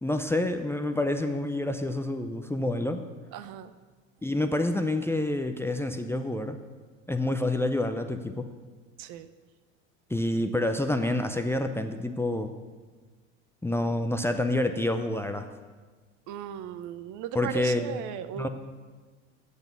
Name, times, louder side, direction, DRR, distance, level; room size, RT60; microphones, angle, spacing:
voice 1, 0.0-3.0 4.2-6.6 7.1-8.5 10.1-12.5 13.6-15.5 17.3-17.9 18.3-18.5, left 1 dB, 5° left, 7 dB, 0.5 m, -28 dB
voice 2, 3.3-3.7 9.0-9.3 16.3-18.5, right 10 dB, 55° right, 12 dB, 0.7 m, -37 dB
8.2 x 7.0 x 6.6 m, 1.4 s
hypercardioid pair, 85°, 37 cm